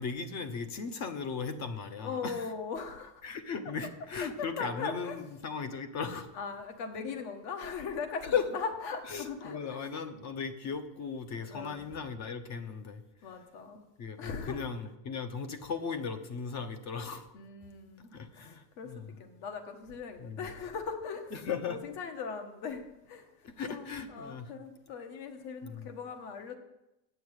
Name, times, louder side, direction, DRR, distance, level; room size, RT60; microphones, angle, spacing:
voice 1, 0.0-2.5 3.2-6.3 7.0-7.2 8.3-8.5 9.1-13.0 14.0-17.3 18.1-19.2 20.2-20.5 21.3-21.8 23.4-24.5 25.6-25.9, left 6 dB, 35° left, 9 dB, 1.1 m, -37 dB
voice 2, 2.0-3.2 4.4-5.2 6.3-9.9 11.3-11.8 13.2-13.8 14.2-14.6 17.3-23.3 23.7-26.5, left 5 dB, 55° left, 6 dB, 1.8 m, -40 dB
8.8 x 7.0 x 8.3 m, 0.92 s
supercardioid pair, 145°, 48 cm